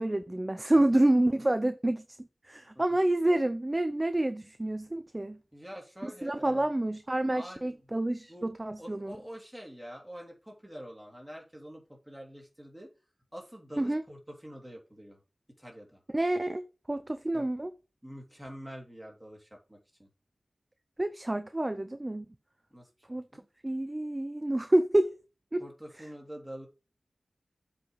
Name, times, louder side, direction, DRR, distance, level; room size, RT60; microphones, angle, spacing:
voice 1, 0.0-2.0 2.5-5.4 6.0-9.1 13.8-14.0 16.1-17.7 21.0-22.2 23.1-23.2 23.6-25.2 25.5-25.6 26.0-26.1, right 1 dB, 20° right, 0.6 m, -28 dB
voice 2, 5.5-6.7 7.3-7.7 8.3-8.5 8.8-12.9 13.3-15.2 15.6-16.0 17.3-17.5 18.0-20.1 22.7-23.5 25.6-26.7, equal, 5° right, 3.0 m, -46 dB
7.6 x 4.9 x 5.6 m
wide cardioid pair, 95°, 0 cm